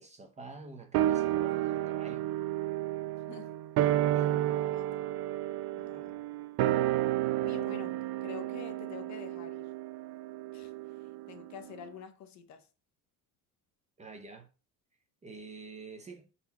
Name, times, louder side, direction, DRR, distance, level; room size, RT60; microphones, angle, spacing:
voice 1, 0.0-2.3 4.1-4.3 5.9-6.3 14.0-14.5 15.2-16.3, right 3 dB, 15° right, 0.7 m, -48 dB
sound 1, 0.9-11.6 11.8-11.9, right 13 dB, 70° right, 0.6 m, -31 dB
voice 2, 4.3-4.9 5.7-6.1 7.4-9.7 10.5-10.7 11.3-12.7, left 7 dB, 45° left, 0.8 m, -47 dB
5.9 x 4.2 x 4.1 m
cardioid pair, 180°, 39 cm